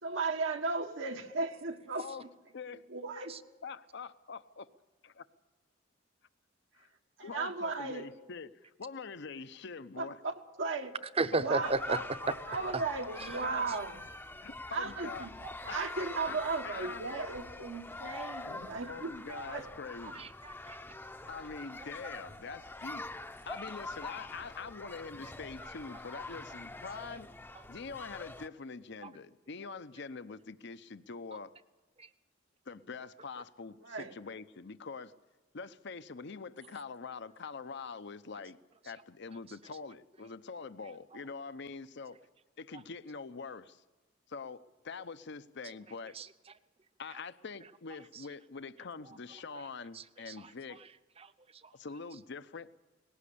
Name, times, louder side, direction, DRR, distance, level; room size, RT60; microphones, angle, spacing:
voice 1, 0.0-2.1 2.9-3.3 7.2-8.1 10.0-10.9 11.4-12.0 12.5-14.0 14.7-15.3 15.6-19.1 19.5-19.7 33.8-34.1, right 4 dB, 80° right, 3 dB, 1.5 m, -36 dB
voice 2, 3.6-4.6 6.7-6.9 7.2-10.2 11.6-13.1 13.4-13.6 14.4-15.3 15.7-16.4 16.6-17.0 18.4-20.2 21.3-27.3 27.7-31.5 32.7-35.1 35.5-38.6 38.8-42.2 42.6-43.8 44.3-46.2 47.0-50.8 51.7-52.7, left 5 dB, 65° left, 13 dB, 0.7 m, -44 dB
voice 3, 11.2-12.0 12.7-12.8 13.2-13.3 15.4-15.5 15.8-15.9 19.3-19.5 20.0-20.8 21.8-21.9 25.6-25.7 27.5-27.6 29.0-29.1 32.0-32.1 41.1-41.2 46.1-46.5 48.1-48.3 49.0-49.2 49.5-49.7 49.9-50.9 51.2-51.7, right 3 dB, 30° right, 12 dB, 0.8 m, -36 dB
sound 1, 11.6-28.5, left 2 dB, 10° left, 0.7 m, -44 dB
19.5 x 17.5 x 8.5 m, 1.2 s
head